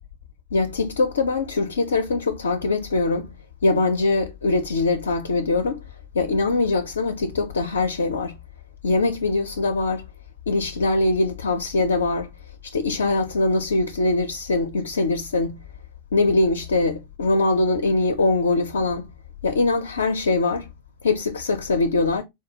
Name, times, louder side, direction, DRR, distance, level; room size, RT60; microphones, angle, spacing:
voice 1, 0.5-3.3 3.6-5.8 6.1-8.4 8.8-10.0 10.5-12.3 12.6-15.6 16.1-19.1 19.4-20.7 21.0-22.2, left 3 dB, 70° left, 0.4 m, -22 dB
4.4 x 2.3 x 2.7 m
figure-of-eight pair, 90°, 0 cm